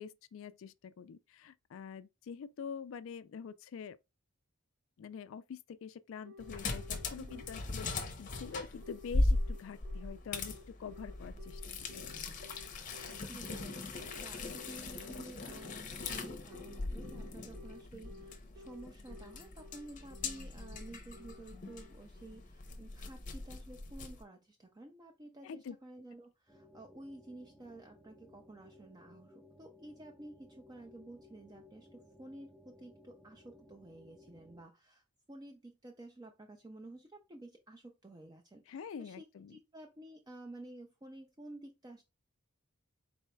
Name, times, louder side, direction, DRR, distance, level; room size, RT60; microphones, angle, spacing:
voice 1, 0.0-4.0 5.0-11.6 11.9-12.0 25.4-25.8 38.7-39.6, left 6 dB, 65° left, 0.3 m, -46 dB
Telephone, 6.2-22.4, left 2 dB, 75° right, 1.5 m, -54 dB
sound 1, 6.4-24.2, left 2 dB, 35° left, 0.7 m, -39 dB
voice 2, 13.3-42.0, right 1 dB, 20° right, 0.4 m, -52 dB
sound 2, 26.5-34.6, left 1 dB, ahead, 0.8 m, -60 dB
4.3 x 4.1 x 2.2 m
head